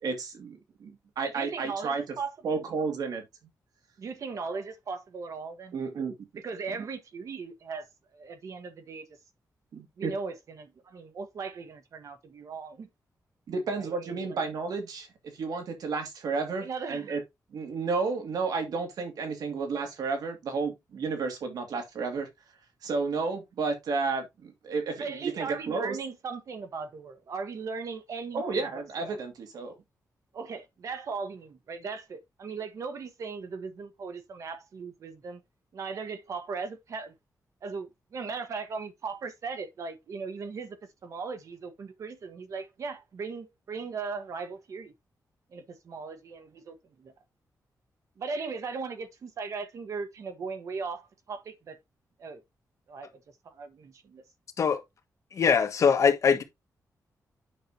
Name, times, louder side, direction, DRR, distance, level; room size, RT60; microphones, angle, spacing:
voice 1, 0.0-2.0 2.4-3.2 5.7-6.2 6.7-6.8 9.7-10.1 13.5-15.1 15.3-17.2 17.5-22.3 22.8-26.0 28.3-29.8, right 4 dB, 85° right, 2.4 m, -32 dB
voice 2, 1.2-2.6 4.0-5.8 6.3-7.9 8.1-9.1 10.0-12.9 13.8-14.4 16.6-17.1 25.0-28.4 28.7-29.2 30.3-35.4 35.7-37.1 37.6-44.9 45.5-47.1 48.2-51.8 52.2-52.4 52.9-53.2 53.4-54.2, right 5 dB, 55° right, 1.3 m, -38 dB
voice 3, 55.3-56.4, left 6 dB, 55° left, 1.4 m, -22 dB
8.7 x 6.7 x 2.8 m
wide cardioid pair, 175°, 6 cm